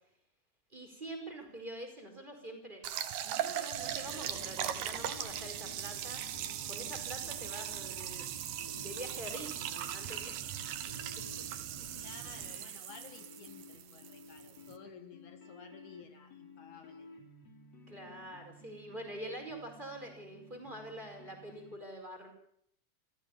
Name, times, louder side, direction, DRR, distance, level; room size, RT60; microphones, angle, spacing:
voice 1, 0.7-6.2 6.6-10.5 12.3-12.7 17.9-22.3, right 1 dB, 15° right, 3 dB, 5.1 m, -46 dB
sound 1, 2.8-14.8, right 10 dB, 80° right, 3.1 m, -39 dB
sound 2, 3.5-21.8, left 2 dB, 50° left, 4.2 m, -55 dB
sound 3, 3.7-12.5, right 7 dB, 65° right, 3.0 m, -51 dB
voice 2, 11.9-17.1, left 6 dB, 65° left, 7 dB, 3.1 m, -54 dB
28.0 x 15.5 x 7.3 m, 0.70 s
omnidirectional pair, 3.9 m